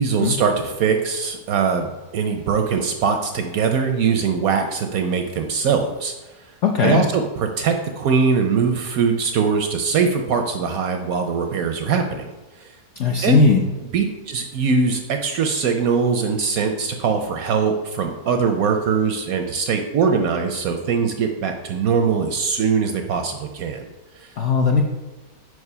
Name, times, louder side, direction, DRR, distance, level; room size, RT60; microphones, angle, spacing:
voice 1, 0.0-6.1 6.8-12.3 13.2-13.4 13.9-23.9 24.2-24.3, right 5 dB, 70° right, 5 dB, 0.8 m, -21 dB
voice 2, 6.6-7.0 13.0-13.6 24.4-24.8, left 4 dB, 70° left, 1 dB, 0.7 m, -17 dB
5.0 x 4.8 x 5.4 m, 1.1 s
omnidirectional pair, 1.9 m